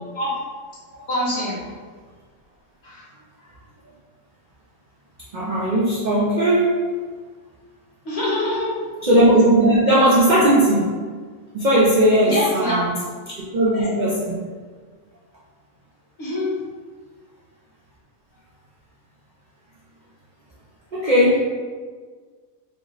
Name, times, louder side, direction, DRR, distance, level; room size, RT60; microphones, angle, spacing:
voice 1, 1.1-1.6 2.8-3.0 8.0-8.7 12.2-12.8 13.7-13.9 16.2-16.5, left 1 dB, 50° left, -7 dB, 1.2 m, -24 dB
voice 2, 5.3-6.7 9.0-11.0 11.5-12.9 13.5-14.4 20.9-21.4, right 1 dB, 55° right, -7 dB, 0.5 m, -17 dB
3.4 x 2.0 x 3.8 m, 1.5 s
omnidirectional pair, 1.4 m